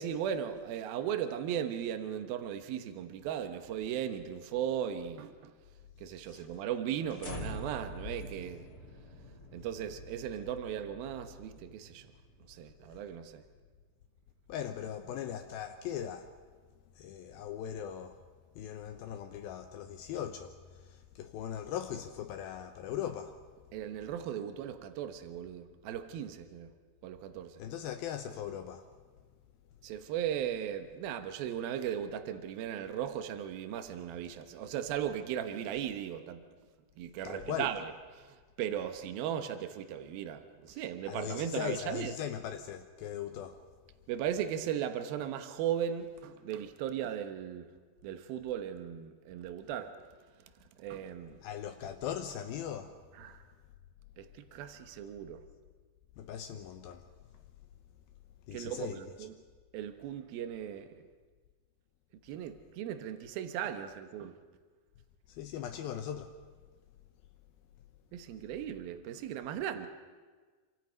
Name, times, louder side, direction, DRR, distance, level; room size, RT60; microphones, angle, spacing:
voice 1, 0.0-5.5 6.0-8.7 9.5-12.1 12.5-13.4 23.7-26.7 27.0-27.6 29.8-36.4 37.0-37.8 38.2-42.1 44.1-47.7 48.0-49.9 50.8-51.4 53.2-53.4 54.2-55.4 58.5-59.3 59.7-60.9 62.2-64.4 68.1-69.9, right 9 dB, 80° right, 3.0 m, -37 dB
voice 2, 6.2-6.6 14.5-16.3 16.9-18.2 18.6-23.4 27.6-28.9 37.2-37.7 40.7-43.6 51.4-53.0 56.2-57.1 58.5-59.2 65.3-66.4, left 9 dB, 80° left, 2.7 m, -39 dB
sound 1, 7.2-13.5, left 1 dB, 30° left, 2.4 m, -46 dB
27.5 x 25.5 x 5.3 m
omnidirectional pair, 4.3 m